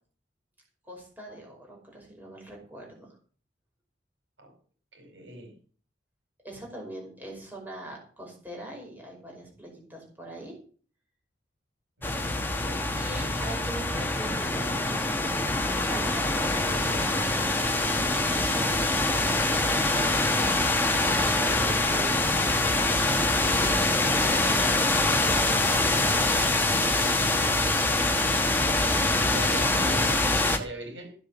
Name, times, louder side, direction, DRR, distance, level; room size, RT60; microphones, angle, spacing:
voice 1, 0.9-3.2 6.4-10.6 12.9-15.0 15.9-20.0 21.2-22.6 23.6-28.3, right 1 dB, 10° right, -1 dB, 5.4 m, -43 dB
voice 2, 4.9-5.5 12.0-12.9 29.1-31.1, right 1 dB, 85° right, 5 dB, 4.8 m, -40 dB
sound 1, 12.0-30.6, left 2 dB, 10° left, 1.5 m, -24 dB
15.5 x 7.5 x 7.2 m, 0.43 s
head